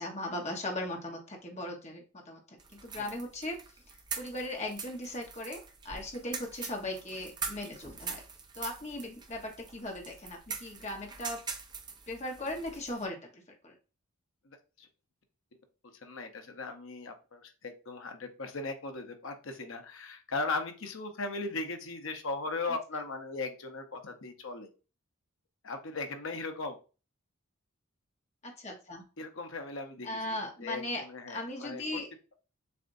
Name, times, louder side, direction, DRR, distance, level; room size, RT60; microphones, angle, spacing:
voice 1, 0.0-2.4 2.7-3.6 4.2-5.6 5.8-8.2 8.5-11.4 12.1-13.2 13.6-13.7 28.4-29.0 30.0-31.0 31.3-32.1, left 1 dB, 30° left, 1 dB, 1.1 m, -38 dB
sound 1, 2.6-13.1, right 5 dB, 20° right, 0.4 m, -43 dB
voice 2, 14.4-14.9 15.9-24.7 25.6-26.8 29.2-31.8, left 3 dB, 70° left, 5 dB, 0.9 m, -38 dB
7.0 x 2.6 x 2.6 m, 0.34 s
head